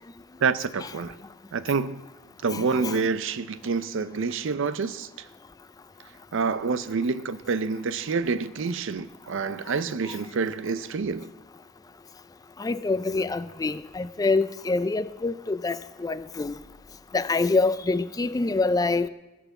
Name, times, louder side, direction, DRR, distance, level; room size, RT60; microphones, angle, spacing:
voice 1, 0.4-1.2 1.5-2.0 2.4-5.1 6.3-11.3, right 4 dB, 65° right, 0.5 m, -27 dB
voice 2, 2.5-3.0 10.1-10.2 12.6-16.6 17.1-19.1, left 3 dB, 20° left, 0.3 m, -26 dB
15.0 x 6.0 x 7.0 m
head